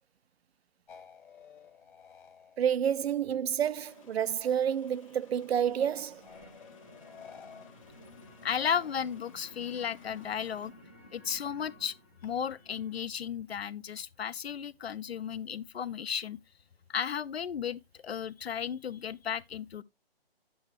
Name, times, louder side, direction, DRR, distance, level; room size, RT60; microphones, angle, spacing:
sound 1, 0.9-4.1 4.4-5.2 6.2-9.5 10.0-10.7, left 7 dB, 55° left, 0.9 m, -55 dB
voice 1, 2.6-6.2, right 9 dB, 85° right, 0.5 m, -29 dB
sound 2, 3.8-10.7, left 6 dB, 35° left, 1.2 m, -60 dB
sound 3, 5.8-13.0, left 1 dB, 10° left, 0.5 m, -55 dB
voice 2, 8.4-10.7 11.1-11.9 12.2-16.4 16.9-19.8, left 8 dB, 80° left, 0.6 m, -34 dB
9.0 x 7.8 x 3.1 m
hypercardioid pair, 160°, 31 cm